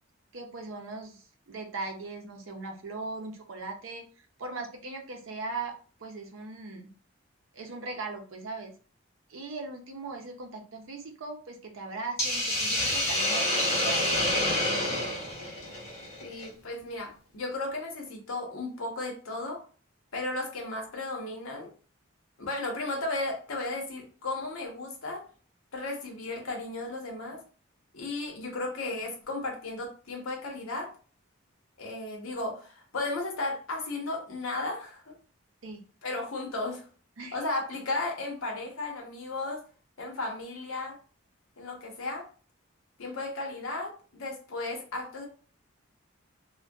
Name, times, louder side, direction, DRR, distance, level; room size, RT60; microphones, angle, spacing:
voice 1, 0.3-4.0 4.4-5.7 6.0-6.9 7.5-8.7 9.3-14.4 35.6-35.8 37.2-37.4, right 3 dB, 75° right, 3 dB, 0.6 m, -39 dB
Hiss, 12.2-16.5, left 1 dB, 35° left, 0.8 m, -28 dB
voice 2, 16.2-19.6 20.1-21.7 22.4-25.2 25.7-27.4 27.9-30.9 31.8-35.1 36.0-36.8 37.3-39.6 40.0-41.0 41.6-42.2 43.0-45.3, left 2 dB, 85° left, 1 dB, 0.8 m, -34 dB
2.5 x 2.2 x 2.2 m, 0.39 s
head